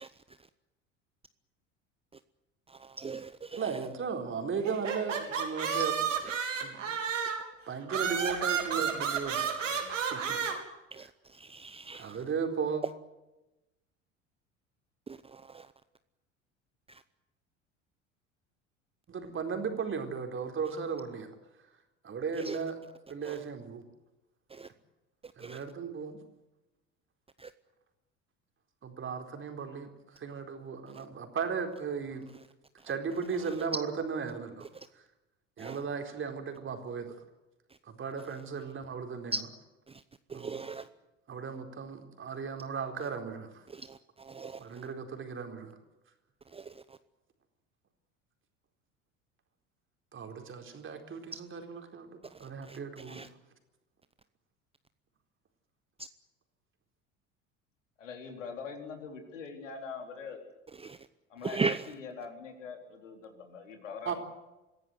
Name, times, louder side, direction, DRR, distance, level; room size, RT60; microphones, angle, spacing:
voice 1, 2.7-3.6 10.9-12.2 15.1-15.7 16.9-17.0 22.4-22.6 23.2-23.4 24.5-24.7 25.4-25.6 27.4-27.5 35.6-35.8 39.3-39.4 39.9-40.0 40.3-40.9 43.7-44.6 46.5-46.8 52.7-52.8 53.1-53.3 60.8-61.0 61.4-61.8, right 4 dB, 15° right, 0.8 m, -38 dB
voice 2, 3.5-6.1 6.5-7.0 7.7-10.4 11.9-12.8 19.1-21.3 22.0-22.8 23.1-23.8 25.4-26.2 28.8-32.3 32.8-34.7 35.6-37.2 38.0-39.4 40.3-40.7 41.3-43.6 44.6-45.7 50.1-53.3 64.0-64.1, right 5 dB, 30° right, 4.2 m, -36 dB
sound 1, 4.6-7.5 7.9-10.5, right 7 dB, 80° right, 3.8 m, -31 dB
voice 3, 58.0-60.4 61.3-61.6 61.9-64.1, left 5 dB, 75° left, 4.2 m, -43 dB
25.5 x 16.0 x 9.5 m
figure-of-eight pair, 65°, 38 cm